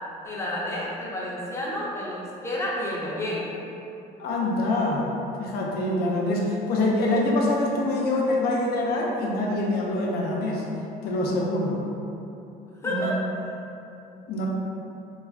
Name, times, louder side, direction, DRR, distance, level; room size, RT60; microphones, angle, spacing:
voice 1, 0.2-3.5 12.8-13.2, left 1 dB, 15° left, -5 dB, 0.6 m, -30 dB
voice 2, 4.2-5.1 5.4-10.6 11.0-11.8 12.8-13.1 14.3-14.5, left 2 dB, 70° left, -2 dB, 0.5 m, -25 dB
2.3 x 2.3 x 3.4 m, 2.8 s
cardioid pair, 110°, 17 cm